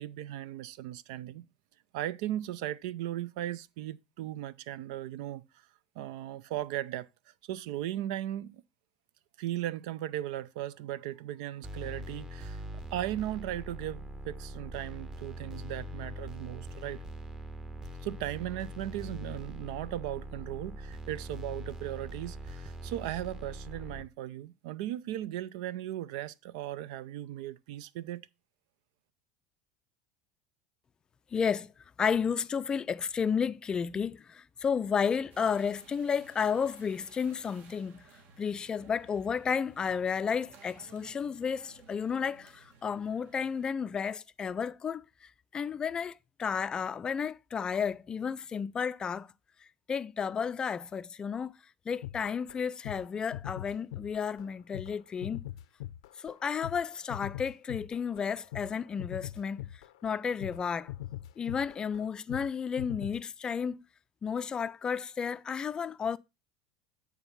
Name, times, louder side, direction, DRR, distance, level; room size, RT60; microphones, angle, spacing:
voice 1, 0.0-1.4 1.9-5.4 6.0-7.1 7.5-8.6 9.4-12.6 12.9-17.0 18.0-28.2, right 13 dB, 75° right, 0.4 m, -37 dB
sound 1, 11.6-24.0, right 1 dB, 20° right, 1.1 m, -42 dB
voice 2, 31.3-31.7 32.0-38.1 38.4-49.3 49.6-51.5 51.9-55.4 56.2-60.9 61.4-63.8 64.2-66.2, left 6 dB, 25° left, 0.4 m, -32 dB
sound 2, 35.3-43.7, right 5 dB, 50° right, 1.4 m, -58 dB
sound 3, 52.0-52.6 52.8-53.1 53.3-54.5 54.7-62.5 62.8-63.2, left 14 dB, 85° left, 0.5 m, -42 dB
8.9 x 3.5 x 5.6 m
supercardioid pair, 110°, 3 cm